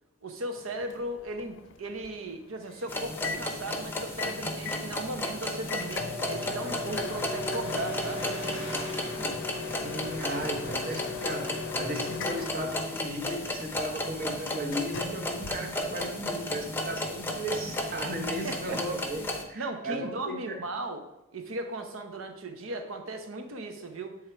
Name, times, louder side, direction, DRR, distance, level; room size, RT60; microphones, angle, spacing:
voice 1, 0.2-8.3 9.0-9.3 18.4-18.8 19.5-21.0 21.3-24.2, right 2 dB, 85° right, 6 dB, 0.8 m, -37 dB
Microwave oven, 0.6-16.3, left 4 dB, 65° left, 0.5 m, -39 dB
sound 1, 2.9-19.4, left 1 dB, 10° left, 0.7 m, -34 dB
sound 2, 6.6-9.8 10.4-11.0 11.4-11.5 11.8-12.1 12.6-12.9 13.4-14.1 14.3-14.4, right 1 dB, 65° right, 1.2 m, -47 dB
voice 2, 9.8-20.6, right 1 dB, 45° right, 3 dB, 1.0 m, -36 dB
8.2 x 3.6 x 4.4 m, 0.89 s
head